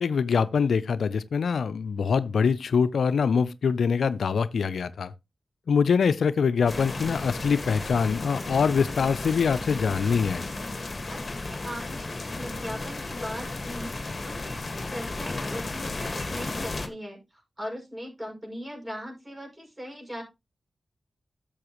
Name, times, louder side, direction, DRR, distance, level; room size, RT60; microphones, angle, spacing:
voice 1, 0.0-5.1 5.7-10.4, left 6 dB, 85° left, 0.4 m, -24 dB
sound 1, 6.7-16.9, left 2 dB, 45° left, 1.6 m, -34 dB
voice 2, 11.1-20.2, equal, 25° right, 6.0 m, -39 dB
12.0 x 6.9 x 3.0 m
cardioid pair, 45°, 0 cm